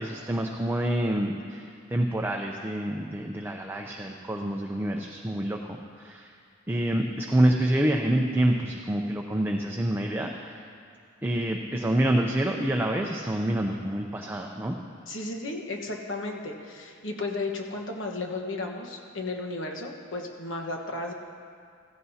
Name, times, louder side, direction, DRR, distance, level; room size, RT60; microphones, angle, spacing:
voice 1, 0.0-5.6 6.0-6.3 6.7-10.6 11.2-14.8, right 1 dB, 10° right, 1 dB, 0.5 m, -27 dB
voice 2, 15.1-21.1, left 2 dB, 70° left, 2 dB, 1.3 m, -34 dB
15.0 x 15.0 x 2.8 m, 2.3 s
head